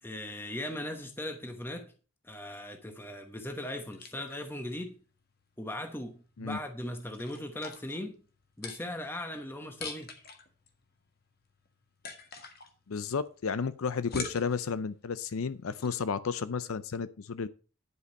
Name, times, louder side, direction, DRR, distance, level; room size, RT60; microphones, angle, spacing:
voice 1, 0.0-1.9 2.2-5.0 5.6-8.2 8.6-10.2, left 1 dB, 10° left, 1.0 m, -38 dB
sound 1, 3.3-16.0, left 4 dB, 45° left, 1.7 m, -47 dB
voice 2, 12.9-17.5, left 5 dB, 70° left, 0.5 m, -32 dB
11.0 x 5.2 x 6.4 m
head